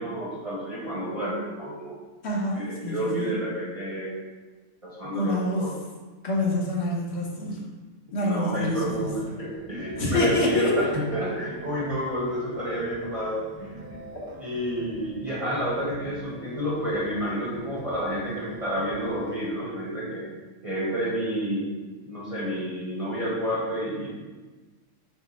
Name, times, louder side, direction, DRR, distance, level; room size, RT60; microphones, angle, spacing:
voice 1, 0.0-2.0 2.5-4.1 4.8-5.7 8.2-14.1 14.4-20.2 20.6-21.7 22.1-24.1, equal, 35° right, -6 dB, 0.7 m, -30 dB
voice 2, 2.2-3.3 5.1-5.7 6.2-7.6 8.1-9.1 10.0-11.0, left 2 dB, 60° left, -3 dB, 1.2 m, -26 dB
sound 1, 8.6-19.5, right 2 dB, 85° right, 1.2 m, -45 dB
5.0 x 2.1 x 4.3 m, 1.3 s
omnidirectional pair, 1.3 m